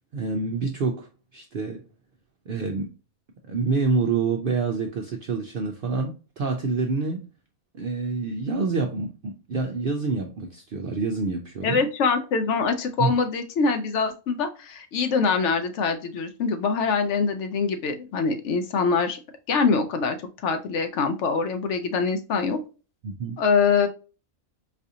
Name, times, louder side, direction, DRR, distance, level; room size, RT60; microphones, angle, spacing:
voice 1, 0.1-1.9 2.5-2.9 3.5-7.3 7.7-11.8 13.0-13.1 23.0-23.4, right 4 dB, 70° right, 3 dB, 0.5 m, -27 dB
voice 2, 11.6-19.2 19.5-20.2 20.4-22.6 23.4-23.9, left 5 dB, 65° left, 6 dB, 0.8 m, -24 dB
4.1 x 2.5 x 2.7 m, 0.33 s
omnidirectional pair, 1.4 m